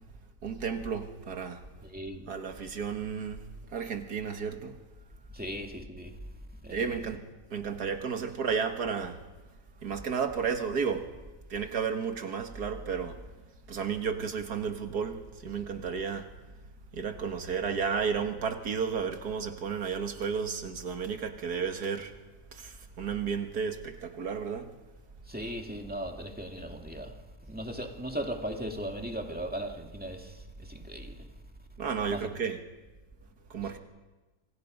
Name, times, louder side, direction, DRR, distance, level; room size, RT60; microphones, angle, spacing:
voice 1, 0.4-1.6 2.3-3.4 3.7-4.7 6.7-7.2 7.5-9.2 9.8-11.1 11.5-13.2 13.7-16.3 16.9-22.1 22.5-24.7 31.8-32.6 33.5-33.8, right 6 dB, 80° right, 2.2 m, -32 dB
voice 2, 1.8-2.3 5.3-6.2 6.6-7.0 25.3-27.1 27.5-31.2 32.1-32.3, right 1 dB, 5° right, 2.3 m, -38 dB
27.5 x 25.5 x 5.3 m
omnidirectional pair, 1.7 m